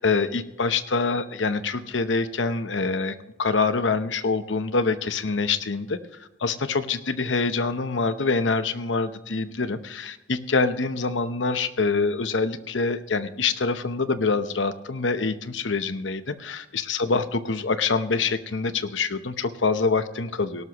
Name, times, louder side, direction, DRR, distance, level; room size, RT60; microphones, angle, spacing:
voice 1, 0.0-6.0 6.4-20.6, left 4 dB, 85° left, 11 dB, 0.9 m, -25 dB
17.5 x 12.5 x 3.0 m, 0.97 s
head